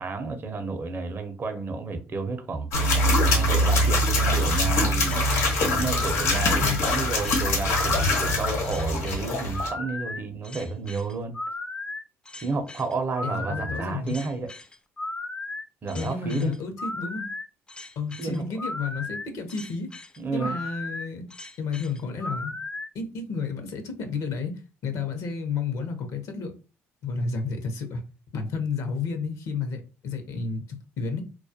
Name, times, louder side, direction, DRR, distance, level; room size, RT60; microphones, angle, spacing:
voice 1, 0.0-2.7 3.3-11.3 12.4-14.5 15.8-16.5 18.2-18.4 20.2-20.6, right 3 dB, 40° right, 0.5 m, -31 dB
sound 1, 2.7-9.7, left 1 dB, 80° left, 1.0 m, -23 dB
sound 2, 5.0-22.9, left 2 dB, 15° left, 0.3 m, -36 dB
voice 2, 13.2-14.2 15.9-17.3 18.0-19.9 20.3-21.2 21.6-22.5 22.9-24.5 24.8-26.5 27.0-28.0 28.3-31.2, left 5 dB, 65° left, 0.6 m, -31 dB
2.2 x 2.0 x 2.7 m
supercardioid pair, 70°, 6 cm